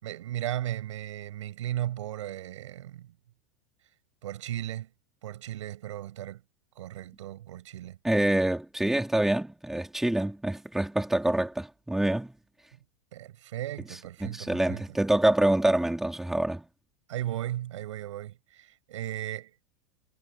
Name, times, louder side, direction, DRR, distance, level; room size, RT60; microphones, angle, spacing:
voice 1, 0.0-3.1 4.2-4.9 5.2-6.4 6.8-8.0 13.1-14.8 17.1-19.5, right 13 dB, 80° right, 5.8 m, -36 dB
voice 2, 8.0-12.3 14.2-16.7, right 1 dB, ahead, 3.4 m, -26 dB
supercardioid pair, 175°, 16 cm